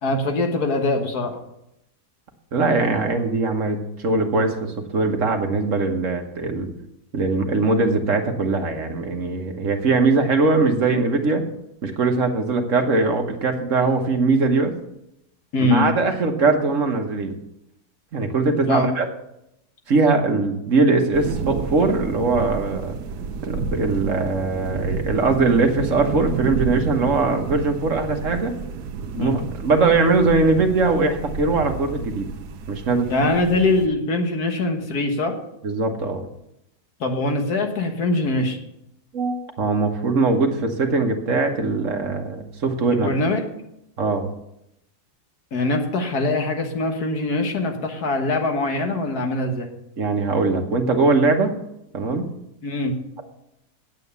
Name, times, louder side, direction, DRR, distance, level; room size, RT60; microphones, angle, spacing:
voice 1, 0.0-1.4 15.5-15.9 18.7-18.9 29.1-29.4 33.1-35.3 37.0-38.6 42.9-43.5 45.5-49.7 52.6-52.9, left 2 dB, 70° left, 4 dB, 1.9 m, -22 dB
voice 2, 2.5-3.8 4.0-6.7 7.1-11.4 11.8-14.7 15.6-17.3 18.1-19.1 19.9-22.9 23.4-28.5 29.2-32.3 32.7-33.3 35.6-36.2 39.1-43.1 44.0-44.3 50.0-51.5 51.9-52.3, right 3 dB, 55° right, 4 dB, 1.5 m, -21 dB
sound 1, 21.1-33.9, right 5 dB, 85° right, 1.3 m, -30 dB
9.2 x 8.3 x 6.8 m, 0.83 s
omnidirectional pair, 1.7 m